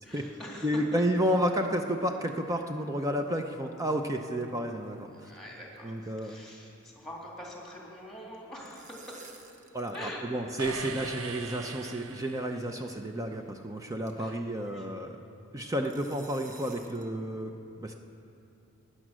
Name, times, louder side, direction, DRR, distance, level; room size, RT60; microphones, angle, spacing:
voice 1, 0.0-1.0 5.1-9.2 9.9-10.3 14.2-14.4 14.6-14.9, equal, ahead, -2 dB, 2.4 m, -44 dB
voice 2, 0.6-5.3 5.8-6.4 9.7-15.1 15.5-17.5 17.8-17.9, equal, 15° right, 4 dB, 0.6 m, -31 dB
sound 1, 3.9-4.6 4.8-5.0 5.3-5.4 5.8-6.0 6.2-7.5 8.4-10.1 10.4-10.5 11.4-11.5 12.3-12.5 13.0-13.1 13.5-13.6 14.1-14.3 15.8-17.1, right 4 dB, 35° right, 1.0 m, -53 dB
sound 2, 10.6-12.8, right 5 dB, 75° right, 0.7 m, -40 dB
16.5 x 10.0 x 6.2 m, 2.7 s
head